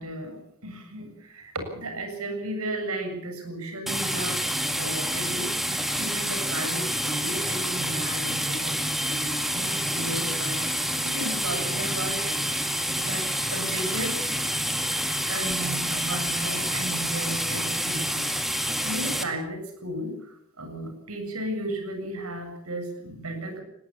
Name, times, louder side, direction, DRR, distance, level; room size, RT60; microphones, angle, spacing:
voice 1, 0.0-4.4 4.8-12.4 12.7-14.2 15.2-18.3 18.8-23.6, right 1 dB, 85° right, 5 dB, 7.4 m, -34 dB
sound 1, 3.9-19.2, equal, ahead, 2.3 m, -28 dB
20.5 x 18.0 x 8.7 m, 0.78 s
head